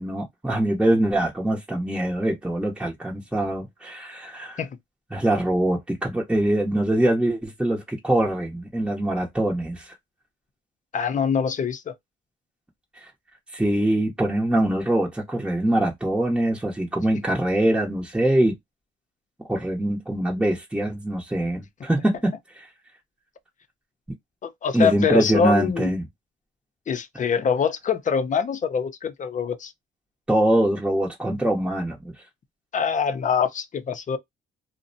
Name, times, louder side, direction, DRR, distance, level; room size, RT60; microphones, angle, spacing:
voice 1, 0.0-4.6 5.1-9.9 13.0-13.1 13.5-18.5 19.5-22.7 24.7-26.0 30.3-32.1, right 1 dB, 5° right, 0.7 m, -23 dB
voice 2, 10.9-11.9 24.4-25.9 26.9-29.7 32.7-34.2, left 6 dB, 40° left, 0.5 m, -24 dB
2.5 x 2.1 x 2.5 m
cardioid pair, 90°, 20 cm